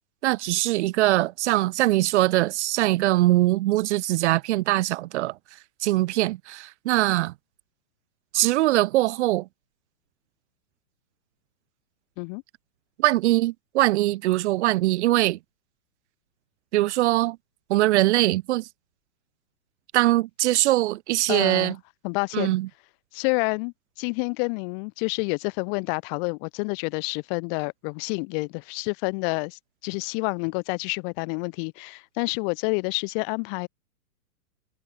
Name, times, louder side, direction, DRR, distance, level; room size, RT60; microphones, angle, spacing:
voice 1, 0.2-5.3 5.8-7.3 8.3-9.5 13.0-15.4 16.7-17.4 17.7-18.7 19.9-21.7 22.3-22.7, right 17 dB, 45° right, 1.5 m, -22 dB
voice 2, 21.3-21.7 22.0-22.5 23.1-33.7, left 39 dB, 40° left, 4.0 m, -28 dB
hypercardioid pair, 140°, 45 cm